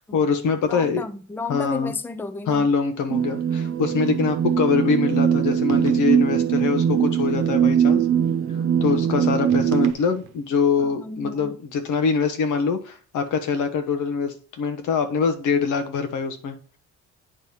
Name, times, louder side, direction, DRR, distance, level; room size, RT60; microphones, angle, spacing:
voice 1, 0.1-1.0 1.5-1.9 2.5-8.1 8.8-16.8, left 5 dB, 80° left, 1.2 m, -24 dB
voice 2, 0.7-2.7 10.8-11.6, left 3 dB, 5° left, 0.5 m, -33 dB
sound 1, 3.1-9.9, right 8 dB, 45° right, 0.5 m, -21 dB
sound 2, 5.7-6.4 9.5-10.5, right 7 dB, 75° right, 0.9 m, -40 dB
8.9 x 3.2 x 5.5 m
cardioid pair, 90°, 30 cm